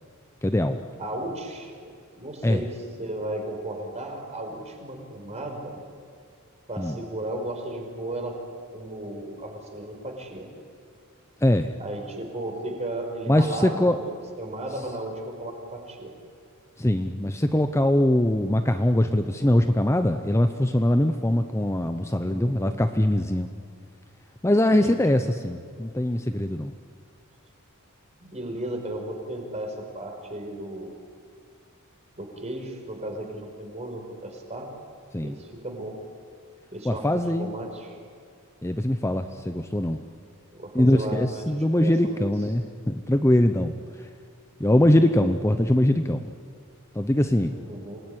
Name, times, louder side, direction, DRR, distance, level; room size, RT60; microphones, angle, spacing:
voice 1, 0.4-0.8 2.4-2.6 6.8-7.0 11.4-11.7 13.3-14.0 16.8-23.5 24.4-26.7 35.1-35.4 36.8-37.5 38.6-40.0 40.7-43.7 44.6-46.3 46.9-47.6, left 1 dB, 10° left, 8 dB, 0.8 m, -22 dB
voice 2, 1.0-2.7 3.0-5.8 6.7-8.4 8.7-10.5 11.8-16.1 22.2-22.8 24.8-25.0 28.2-31.0 32.2-34.7 35.2-35.9 36.7-38.0 40.5-42.3 47.6-48.0, right 1 dB, 30° right, 3 dB, 4.8 m, -35 dB
27.5 x 19.5 x 9.8 m, 2.2 s
head